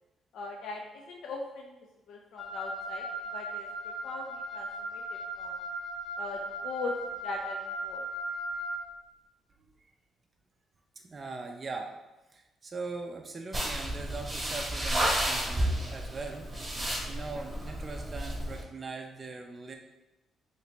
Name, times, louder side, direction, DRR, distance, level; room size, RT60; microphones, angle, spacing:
voice 1, 0.3-1.7 2.1-3.0 3.3-3.7 4.0-5.6 6.2-6.9 7.2-7.6 7.8-8.0 16.8-16.9, left 3 dB, 80° left, 0 dB, 0.4 m, -40 dB
Wind instrument woodwind instrument, 2.4-8.8, right 1 dB, 35° left, 0.7 m, -37 dB
voice 2, 11.0-12.0 12.3-16.5 17.1-19.8, right 3 dB, 35° right, 3 dB, 0.4 m, -40 dB
sound 1, 13.5-18.6, right 1 dB, 15° right, 0.9 m, -32 dB
2.9 x 2.8 x 3.2 m, 1.0 s
cardioid pair, 90°, 0 cm